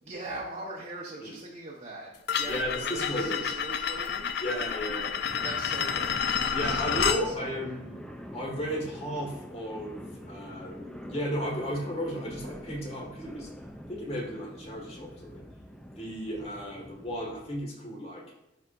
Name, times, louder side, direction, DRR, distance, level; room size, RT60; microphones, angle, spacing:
voice 1, 0.0-4.3 5.4-6.2 6.5-7.7, right 2 dB, 35° right, -4 dB, 1.0 m, -41 dB
sound 1, 2.3-7.2, left 7 dB, 60° left, 0.5 m, -30 dB
voice 2, 2.5-3.4 4.4-5.1 6.5-7.8 8.3-10.0 10.3-13.5 13.9-15.4 16.0-18.2, equal, 35° left, -1 dB, 1.8 m, -34 dB
sound 2, 5.3-17.6, equal, 5° left, 0.5 m, -45 dB
12.5 x 4.3 x 2.6 m, 0.93 s
head